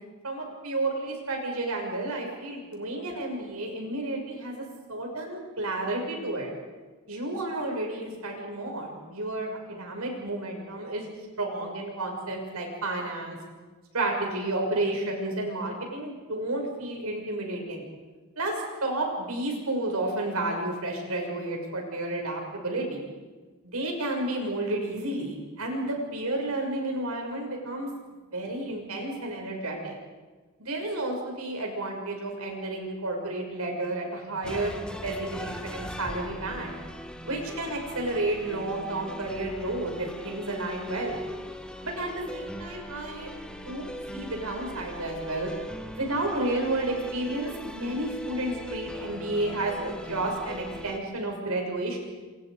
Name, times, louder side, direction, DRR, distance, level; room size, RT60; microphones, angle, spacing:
voice 1, 0.2-6.5 7.1-11.0 11.4-13.4 13.9-17.9 18.4-23.1 23.6-27.9 28.3-30.0 30.6-36.7 37.2-41.2 41.8-43.9 44.1-45.5 45.9-52.0, right 2 dB, 90° right, 1 dB, 6.4 m, -31 dB
sound 1, 34.4-51.0, equal, 5° left, 1.3 m, -40 dB
27.5 x 27.0 x 5.1 m, 1.3 s
head